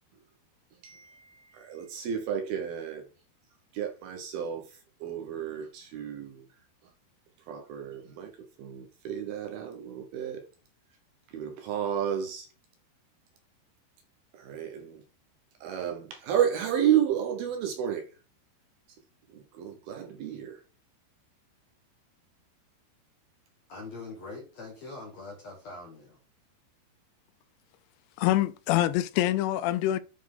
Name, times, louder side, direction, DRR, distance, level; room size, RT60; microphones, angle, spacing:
voice 1, 0.8-3.0 3.7-4.6 5.0-6.5 7.5-8.3 8.6-10.4 11.3-12.5 14.3-15.0 15.6-18.1 19.3-20.6, right 9 dB, 70° right, 2.5 m, -31 dB
voice 2, 23.7-26.2, left 3 dB, 60° left, 1.8 m, -43 dB
voice 3, 28.2-30.0, left 14 dB, 85° left, 2.8 m, -25 dB
9.4 x 4.3 x 3.7 m
omnidirectional pair, 5.1 m